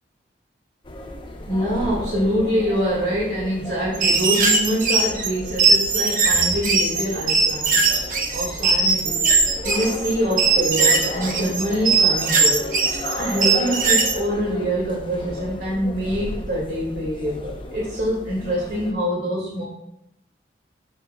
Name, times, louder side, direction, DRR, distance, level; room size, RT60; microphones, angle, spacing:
sound 1, 0.8-18.9, left 1 dB, 30° left, 0.8 m, -34 dB
voice 1, 1.5-9.2 9.6-12.7 13.2-19.6, equal, 80° right, -5 dB, 2.3 m, -25 dB
sound 2, 3.9-14.2, right 4 dB, 50° right, 0.9 m, -20 dB
10.5 x 6.8 x 2.3 m, 0.80 s
head